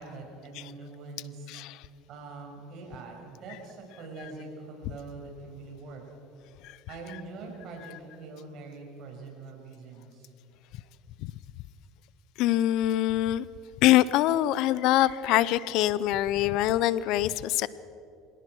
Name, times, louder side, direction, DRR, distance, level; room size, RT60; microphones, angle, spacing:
voice 1, 0.0-1.5 2.1-6.0 6.9-10.3, right 3 dB, 55° right, 1 dB, 6.4 m, -43 dB
voice 2, 1.5-1.9 6.6-6.8 11.2-11.3 12.4-13.4 13.8-17.7, left 14 dB, 65° left, 18 dB, 0.6 m, -24 dB
25.5 x 17.5 x 6.2 m, 2.6 s
supercardioid pair, 110°, 0 cm